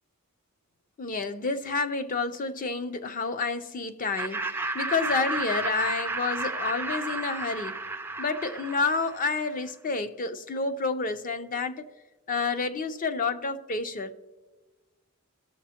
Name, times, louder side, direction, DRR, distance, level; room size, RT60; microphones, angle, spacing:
voice 1, 1.0-7.8 8.2-11.8 12.3-14.2, left 4 dB, 40° left, 0.5 m, -29 dB
Laughter, 4.2-9.5, right 3 dB, 10° right, 0.3 m, -32 dB
18.0 x 6.9 x 2.9 m
head